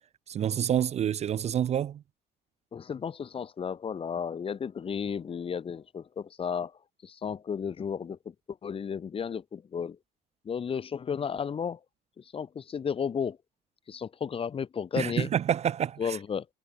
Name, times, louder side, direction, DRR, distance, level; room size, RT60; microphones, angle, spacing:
voice 1, 0.3-2.0 15.0-16.2, right 9 dB, 40° right, 0.4 m, -28 dB
voice 2, 2.7-10.0 10.4-11.8 12.2-13.4 13.9-15.3 16.0-16.5, left 7 dB, 35° left, 1.0 m, -33 dB
cardioid pair, 110°, 17 cm